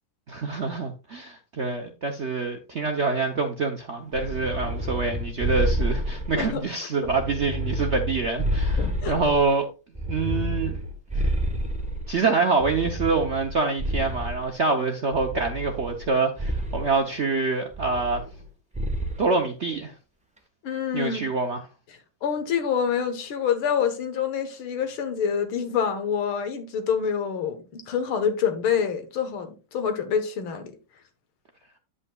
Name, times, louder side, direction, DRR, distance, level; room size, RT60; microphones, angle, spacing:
voice 1, 0.3-9.7 10.1-10.8 11.2-11.3 12.1-18.2 19.2-19.9 20.9-21.6, right 4 dB, 60° right, 0.7 m, -26 dB
sound 1, 4.1-6.6 7.0-9.5 10.0-12.1 12.6-14.5 15.1-16.1 16.4-16.9 17.7-18.5 18.8-19.2, equal, 10° right, 0.3 m, -29 dB
voice 2, 6.3-6.7 7.0-7.1 8.8-9.2 20.6-21.3 22.2-30.7, left 7 dB, 85° left, 2.0 m, -26 dB
9.8 x 8.1 x 2.3 m
omnidirectional pair, 2.2 m